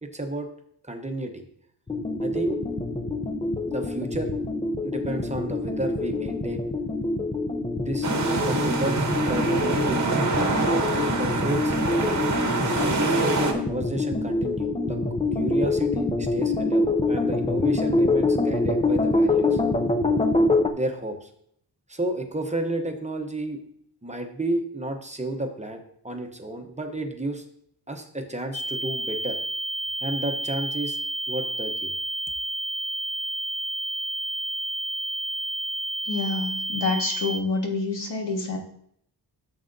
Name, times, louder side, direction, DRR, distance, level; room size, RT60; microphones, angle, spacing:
voice 1, 0.0-0.5 0.8-1.4 2.2-2.6 3.6-4.3 4.8-6.7 7.7-9.0 9.3-10.0 10.3-12.2 12.7-15.0 15.4-19.6 20.7-21.3 21.9-23.6 24.0-27.4 27.9-29.4 30.0-31.0 31.3-31.9, right 1 dB, 15° right, 4 dB, 0.7 m, -31 dB
sound 1, 1.9-20.7, left 2 dB, 15° left, 0.4 m, -25 dB
sound 2, 8.0-13.5, right 3 dB, 45° right, 0.9 m, -26 dB
sound 3, 28.5-37.4, right 2 dB, 55° left, 0.6 m, -30 dB
voice 2, 36.1-38.6, left 3 dB, 90° left, 1 dB, 1.7 m, -27 dB
11.0 x 6.9 x 2.6 m, 0.67 s
wide cardioid pair, 155°, 41 cm